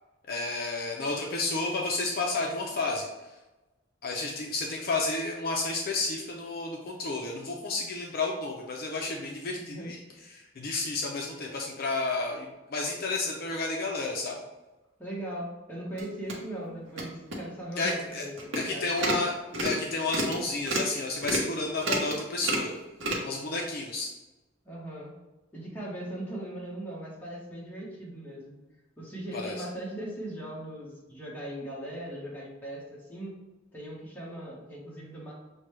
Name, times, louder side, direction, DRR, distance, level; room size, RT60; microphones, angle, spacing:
voice 1, 0.3-3.3 4.0-10.0 10.3-14.4 17.8-18.2 18.6-19.3 19.6-22.7 23.2-24.1 29.3-29.6, left 3 dB, 50° left, 0 dB, 0.4 m, -31 dB
voice 2, 9.6-9.9 15.0-19.2 24.6-25.1 25.5-28.6 29.0-33.3 33.7-35.3, right 1 dB, 10° left, -5 dB, 1.0 m, -39 dB
sound 1, 16.0-16.3 16.9-17.0 17.3-17.4 17.8-17.9 18.4-18.6 18.9-19.2 19.5-19.8 20.1-20.4 20.7-20.9 21.2-21.5 21.8-22.2 22.4-22.7 23.0-23.2, right 1 dB, 75° right, 0.8 m, -29 dB
6.1 x 2.2 x 3.1 m, 1.1 s
head